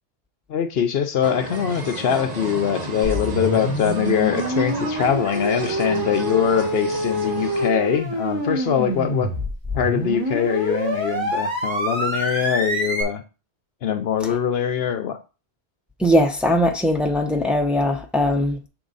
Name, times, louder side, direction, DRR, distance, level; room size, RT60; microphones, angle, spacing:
voice 1, 0.5-9.3 9.7-13.2 13.8-15.2, left 8 dB, 70° left, 0.9 m, -23 dB
sound 1, 1.2-7.7, right 3 dB, 40° right, 1.0 m, -33 dB
sound 2, 3.0-13.0, equal, 25° right, 1.8 m, -26 dB
voice 2, 16.0-18.7, left 1 dB, ahead, 0.8 m, -20 dB
6.3 x 4.8 x 4.0 m
omnidirectional pair, 1.1 m